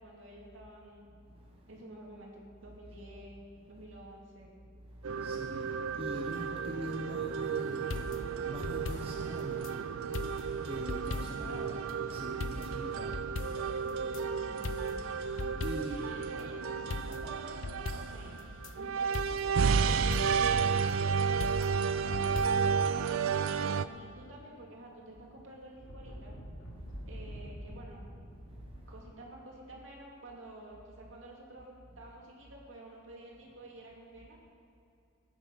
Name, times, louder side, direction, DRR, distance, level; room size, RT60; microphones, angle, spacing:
voice 1, 0.0-1.1 1.7-4.6 11.3-11.8 14.4-15.0 15.8-16.6 17.1-18.4 18.7-21.2 21.5-26.3 27.1-28.2 28.9-34.4, right 1 dB, 65° right, -2 dB, 2.6 m, -50 dB
voice 2, 1.3-1.8 3.6-3.8 4.8-14.5 15.2-16.3 26.7-27.1 28.4-28.9, right 1 dB, 25° right, -1 dB, 0.9 m, -44 dB
sound 1, 5.0-23.9, right 6 dB, 85° right, 0.5 m, -32 dB
sound 2, 7.9-9.7 10.1-11.6 11.9-12.0 12.4-14.2 14.6-16.1 16.4-16.5 16.9-18.7 19.1-20.6 21.4-22.7, left 3 dB, 65° left, 0.6 m, -40 dB
sound 3, 24.3-28.8, equal, 85° left, 3.0 m, -48 dB
14.0 x 9.3 x 5.7 m, 2.6 s
head